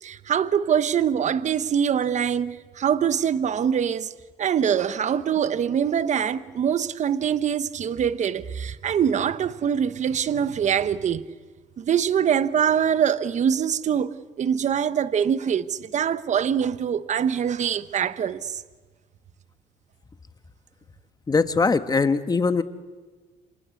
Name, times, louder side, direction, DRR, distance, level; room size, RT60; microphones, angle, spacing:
voice 1, 0.0-4.1 4.4-11.2 11.8-14.1 14.4-18.6, right 8 dB, 45° right, 1.1 m, -24 dB
voice 2, 21.3-22.6, left 4 dB, 25° left, 1.5 m, -21 dB
28.0 x 25.0 x 8.4 m
cardioid pair, 110°, 17 cm